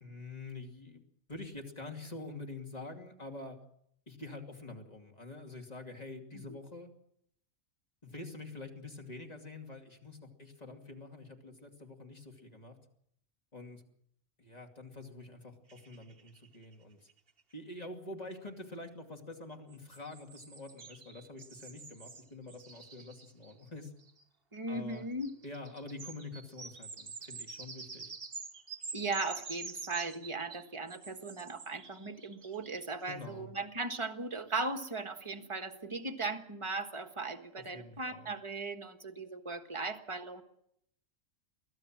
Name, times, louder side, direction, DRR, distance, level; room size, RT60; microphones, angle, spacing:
voice 1, 0.0-1.0 1.3-3.6 4.1-6.9 8.0-12.8 13.5-13.8 14.4-17.1 17.5-23.9 24.7-25.0 25.4-28.1 33.1-33.5 37.6-38.3, left 2 dB, 30° left, 3 dB, 2.8 m, -46 dB
sound 1, 15.7-16.7 17.1-17.2 17.4-17.5 19.7-24.2 24.9-33.1, right 4 dB, 45° right, 1.5 m, -47 dB
voice 2, 24.5-25.3 28.9-40.4, right 3 dB, 20° right, 6 dB, 1.6 m, -38 dB
23.5 x 16.0 x 7.5 m, 0.72 s
omnidirectional pair, 1.4 m